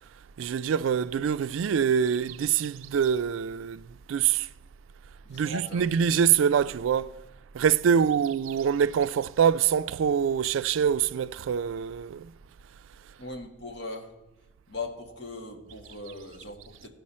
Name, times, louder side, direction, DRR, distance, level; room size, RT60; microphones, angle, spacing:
voice 1, 0.4-3.8 4.1-4.5 5.3-7.2 7.5-12.3, right 7 dB, 85° right, 0.3 m, -25 dB
voice 2, 5.2-6.0 7.9-8.1 13.2-14.1 14.7-16.9, left 2 dB, 60° left, 1.6 m, -39 dB
16.0 x 5.3 x 4.2 m
head